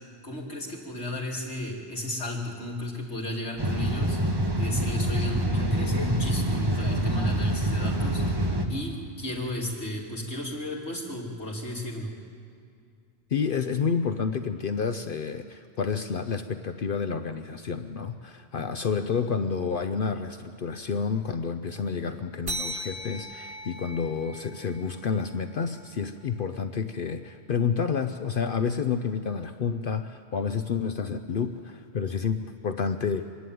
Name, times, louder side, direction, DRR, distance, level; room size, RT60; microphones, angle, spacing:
voice 1, 0.2-4.2 4.6-8.4 8.7-12.1, left 1 dB, 75° left, -4 dB, 3.4 m, -34 dB
sound 1, 3.6-8.7, right 1 dB, 20° right, 1.3 m, -26 dB
voice 2, 13.3-33.2, left 6 dB, 55° left, 8 dB, 0.8 m, -29 dB
sound 2, 22.5-27.4, right 1 dB, 60° right, 1.7 m, -40 dB
24.5 x 11.5 x 9.3 m, 2.3 s
omnidirectional pair, 1.1 m